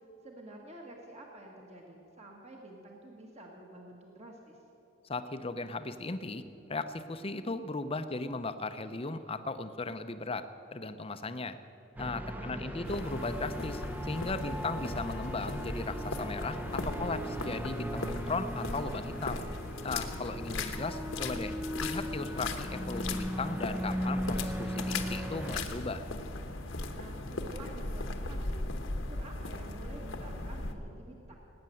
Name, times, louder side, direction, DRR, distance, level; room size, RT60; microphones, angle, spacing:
voice 1, 0.0-4.6 12.3-13.1 26.9-28.6 29.0-31.4, right 1 dB, 30° right, 0 dB, 1.6 m, -49 dB
voice 2, 5.0-6.4 6.7-10.4 10.7-11.6 12.0-19.4 19.8-21.5 21.8-26.0, left 3 dB, 30° left, 10 dB, 0.7 m, -37 dB
sound 1, 12.0-25.6, equal, 10° right, 0.6 m, -38 dB
sound 2, 12.8-30.7, left 2 dB, 70° left, 1.2 m, -38 dB
19.0 x 9.6 x 7.8 m, 3.0 s
head